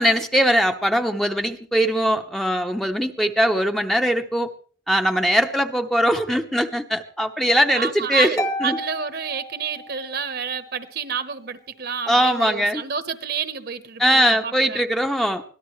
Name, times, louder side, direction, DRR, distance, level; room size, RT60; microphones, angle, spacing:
voice 1, 0.0-4.5 4.9-8.8 12.1-12.8 14.0-15.4, equal, ahead, 5 dB, 0.9 m, -21 dB
voice 2, 7.7-8.4 8.6-14.8, right 6 dB, 55° right, 11 dB, 1.2 m, -29 dB
Harp, 8.4-10.2, equal, 20° left, 1.3 m, -31 dB
24.5 x 17.5 x 3.3 m, 0.43 s
head